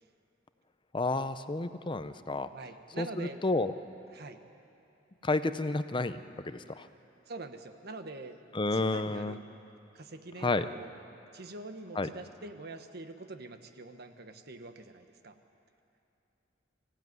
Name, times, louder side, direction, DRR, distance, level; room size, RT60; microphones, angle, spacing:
voice 1, 0.9-2.5 3.0-3.7 5.2-6.9 8.5-9.4 10.4-10.7 11.9-12.1, left 2 dB, 25° left, 12 dB, 0.7 m, -31 dB
voice 2, 2.5-3.4 4.1-4.4 7.3-8.4 8.7-9.4 9.9-10.9 11.3-15.4, right 2 dB, 55° right, 8 dB, 1.3 m, -45 dB
24.5 x 15.5 x 9.5 m, 2.8 s
head